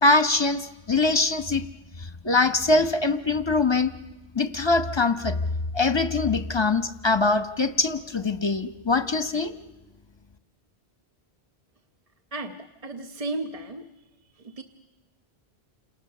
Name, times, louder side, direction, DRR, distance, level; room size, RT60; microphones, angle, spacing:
voice 1, 0.0-1.6 2.2-3.9 4.3-5.4 5.7-9.5, left 3 dB, 25° left, 9 dB, 1.0 m, -23 dB
voice 2, 12.3-14.1 14.3-14.6, right 2 dB, 35° right, 6 dB, 1.0 m, -35 dB
29.5 x 27.5 x 6.7 m, 1.1 s
omnidirectional pair, 1.1 m